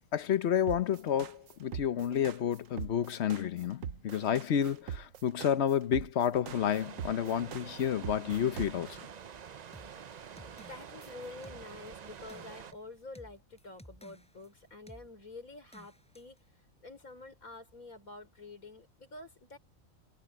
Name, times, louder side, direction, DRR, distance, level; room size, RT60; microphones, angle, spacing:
voice 1, 0.1-9.0, left 9 dB, 55° left, 1.0 m, -30 dB
sound 1, 0.7-9.1, right 8 dB, 75° right, 1.2 m, -41 dB
sound 2, 6.5-12.7, right 7 dB, 55° right, 0.5 m, -48 dB
sound 3, 9.7-14.5 14.9-15.1 15.7-16.4, equal, 5° left, 7.4 m, -55 dB
voice 2, 10.5-16.4 16.8-19.6, left 3 dB, 90° left, 5.0 m, -48 dB
omnidirectional pair, 1.4 m